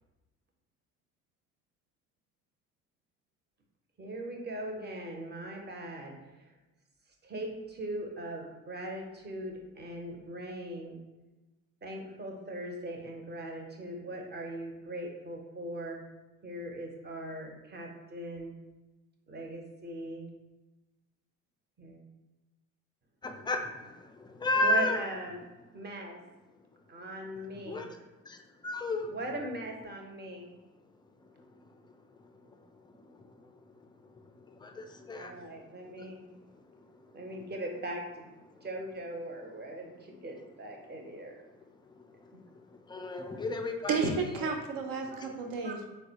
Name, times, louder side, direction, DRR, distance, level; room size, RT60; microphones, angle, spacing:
voice 1, 4.0-6.2 7.2-11.0 11.8-16.0 16.4-18.6 19.3-20.3 21.8-22.0 24.6-25.4 25.7-26.2 26.9-27.9 29.1-30.5 35.2-36.3 37.1-38.3 38.6-41.3 45.1-45.2 45.6-45.8, right 1 dB, 30° right, 2 dB, 0.7 m, -40 dB
voice 2, 23.2-25.0 27.6-27.9 28.2-29.1 31.2-31.9 32.2-37.4 38.5-38.7 41.5-44.5 45.0-45.3, left 2 dB, 15° left, 5 dB, 0.3 m, -36 dB
voice 3, 43.9-45.9, right 4 dB, 70° right, 4 dB, 0.6 m, -32 dB
3.9 x 2.1 x 2.7 m, 1.1 s
hypercardioid pair, 65°, 35 cm